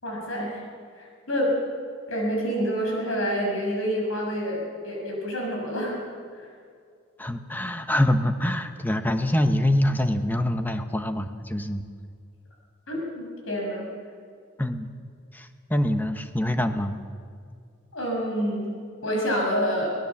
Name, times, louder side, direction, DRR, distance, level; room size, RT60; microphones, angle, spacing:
voice 1, 0.0-0.6 0.9-1.6 2.1-6.0 6.4-6.5 12.9-13.8 17.9-18.8 19.0-19.9, equal, 85° left, -1 dB, 6.6 m, -27 dB
voice 2, 7.2-11.9 14.6-14.9 15.3-17.0, left 1 dB, 10° left, 8 dB, 1.0 m, -25 dB
23.5 x 18.0 x 7.2 m, 2.2 s
head